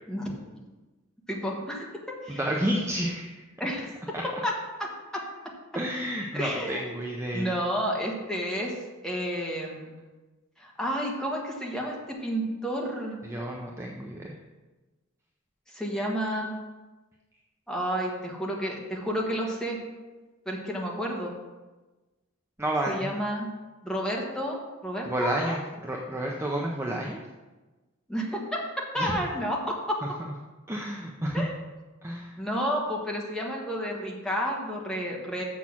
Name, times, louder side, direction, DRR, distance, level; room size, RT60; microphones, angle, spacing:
voice 1, 0.1-0.4 1.3-1.9 2.2-2.4 3.6-4.0 4.4-4.5 4.8-5.2 6.3-6.9 7.3-8.8 9.0-9.9 10.6-13.2 15.7-16.5 17.7-19.8 20.4-21.3 22.9-23.5 23.8-25.6 28.1-28.4 28.9-30.0 31.3-31.5 32.4-35.4, equal, 5° left, -2 dB, 1.5 m, -31 dB
voice 2, 2.3-3.4 4.1-4.2 5.7-7.5 13.2-14.3 22.6-23.1 25.0-27.2 29.0-29.1 30.7-31.4 32.0-32.3, right 1 dB, 10° right, -1 dB, 0.7 m, -30 dB
7.2 x 6.2 x 6.0 m, 1.2 s
head